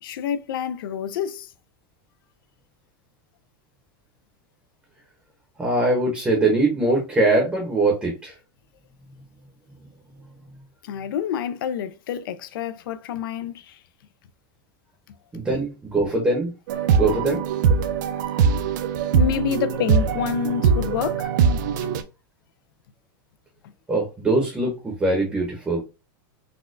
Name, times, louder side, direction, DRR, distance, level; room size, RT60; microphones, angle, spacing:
voice 1, 0.0-1.5 10.8-13.8 15.1-15.2 19.1-21.3 21.8-21.9, left 8 dB, 80° left, 0.4 m, -28 dB
voice 2, 5.6-8.3 15.3-16.5 17.0-17.4 19.7-19.8 23.9-25.8, right 2 dB, 10° right, 0.7 m, -22 dB
sound 1, 16.7-22.0, right 6 dB, 60° right, 0.4 m, -21 dB
4.1 x 2.2 x 2.5 m
supercardioid pair, 170°, 11 cm